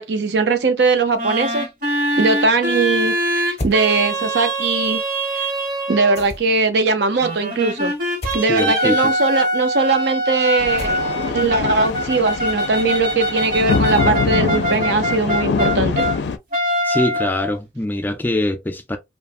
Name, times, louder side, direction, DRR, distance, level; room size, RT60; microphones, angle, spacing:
voice 1, 0.0-1.7 2.2-5.0 5.3-5.5 5.9-7.9 8.3-11.0 11.3-16.1, right 3 dB, 70° right, 0.6 m, -20 dB
sound 1, 1.2-6.3 7.2-16.2 16.5-17.6, equal, 50° right, 1.1 m, -23 dB
sound 2, 3.6-3.8 6.2-6.7 8.2-8.5 10.8-11.3, left 1 dB, 35° left, 0.7 m, -30 dB
voice 2, 8.5-9.2 16.8-19.0, left 1 dB, 10° left, 0.3 m, -23 dB
sound 3, 10.6-16.4, left 5 dB, 80° left, 0.4 m, -24 dB
3.1 x 2.2 x 2.4 m
head